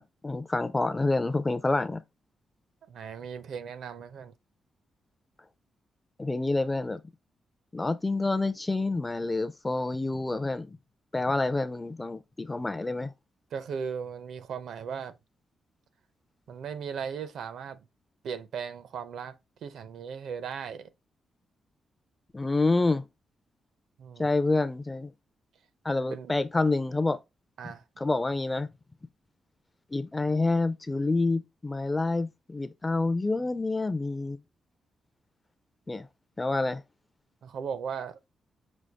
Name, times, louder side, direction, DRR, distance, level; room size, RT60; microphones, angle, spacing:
voice 1, 0.0-2.0 6.2-7.0 7.7-10.7 11.1-13.1 22.3-23.1 24.2-25.1 25.8-27.2 28.0-28.7 29.9-34.4 35.9-36.1 36.4-36.8, left 2 dB, 15° left, 0.4 m, -28 dB
voice 2, 2.9-4.3 13.5-15.1 16.5-17.8 18.2-19.3 19.6-20.9 24.0-24.3 26.0-26.3 27.6-27.8 37.4-38.3, right 7 dB, 75° right, 0.6 m, -37 dB
6.2 x 2.3 x 3.4 m
wide cardioid pair, 170°, 0 cm